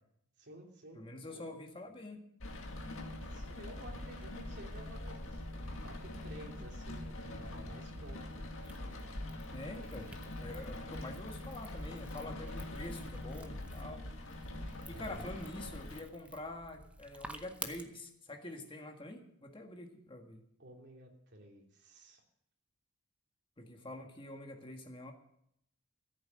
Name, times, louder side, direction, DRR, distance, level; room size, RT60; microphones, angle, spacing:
voice 1, 0.4-1.5 3.3-8.5 14.9-15.3 20.6-22.2, right 1 dB, 50° right, 1 dB, 3.0 m, -53 dB
voice 2, 0.9-2.2 9.5-10.1 10.4-14.1 14.9-20.4 23.6-25.1, left 1 dB, 25° left, 3 dB, 1.8 m, -46 dB
Rain, 2.4-16.0, left 1 dB, 60° left, 2.1 m, -44 dB
sound 1, 8.6-17.8, right 1 dB, 5° right, 0.8 m, -52 dB
14.0 x 8.6 x 7.7 m, 0.75 s
head